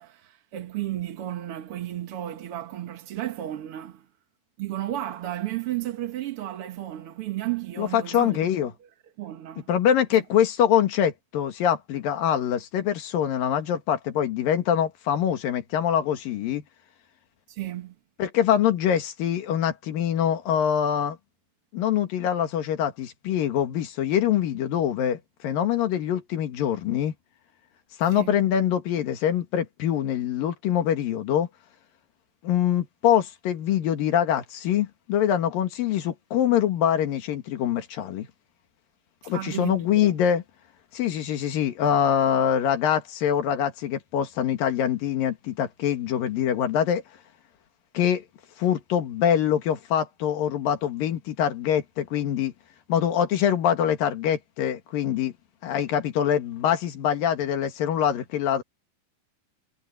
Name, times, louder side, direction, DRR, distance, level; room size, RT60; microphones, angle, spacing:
voice 1, 0.0-4.1 4.6-8.4 9.2-9.7 17.5-17.9 28.1-28.4 39.2-40.1, right 14 dB, 60° right, 1.5 m, -33 dB
voice 2, 7.8-8.7 9.7-16.6 18.2-21.2 21.7-27.1 28.0-31.5 32.4-38.3 39.2-40.4 40.9-47.0 47.9-48.2 48.6-52.5 52.9-55.3 55.6-58.6, left 9 dB, 80° left, 3.5 m, -24 dB
omnidirectional pair, 4.0 m